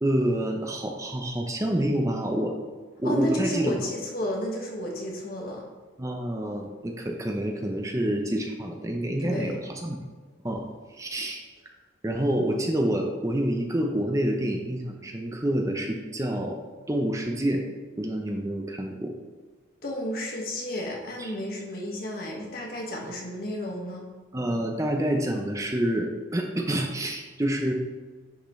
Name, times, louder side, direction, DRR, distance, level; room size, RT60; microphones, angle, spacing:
voice 1, 0.0-2.5 3.0-3.8 6.0-10.0 10.4-10.6 10.9-11.4 12.0-16.6 16.9-17.6 18.0-19.1 21.2-21.3 24.3-27.7, right 1 dB, 15° right, 2 dB, 0.6 m, -27 dB
voice 2, 3.0-5.6 9.2-9.6 19.8-24.1, equal, 50° left, -1 dB, 1.7 m, -32 dB
10.0 x 5.9 x 3.2 m, 1.4 s
head